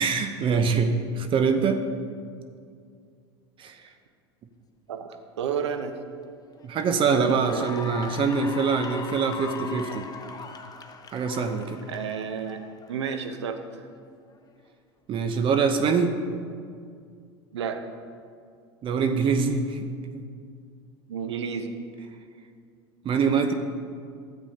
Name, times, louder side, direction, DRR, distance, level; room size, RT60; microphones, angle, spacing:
voice 1, 0.0-1.8 3.6-3.8 6.6-10.1 11.1-11.8 15.1-16.2 18.8-19.8 23.0-23.5, right 5 dB, 35° right, 7 dB, 0.7 m, -24 dB
voice 2, 4.9-6.0 7.2-8.0 11.9-12.6 12.9-13.6 17.5-17.8 21.1-21.8, right 7 dB, 80° right, 7 dB, 0.8 m, -31 dB
Cheering / Applause, 6.0-6.2 6.7-13.2, left 5 dB, 25° left, 0.8 m, -40 dB
13.5 x 8.2 x 2.8 m, 2.2 s
hypercardioid pair, 85°, 14 cm